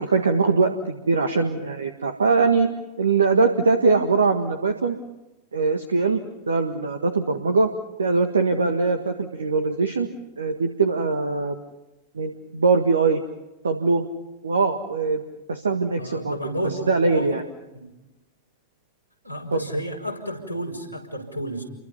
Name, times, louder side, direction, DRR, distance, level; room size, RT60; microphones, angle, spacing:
voice 1, 0.0-2.7 3.0-5.0 5.5-6.2 6.5-7.7 8.0-10.1 10.4-11.6 12.1-13.2 13.6-14.0 14.4-15.2 15.5-16.4 16.9-17.4 19.5-19.7, right 4 dB, 70° right, 7 dB, 1.7 m, -21 dB
voice 2, 16.0-17.4 17.7-17.9 19.2-21.6, equal, 85° right, 5 dB, 5.2 m, -31 dB
30.0 x 23.5 x 5.6 m, 0.97 s
figure-of-eight pair, 90°, 0 cm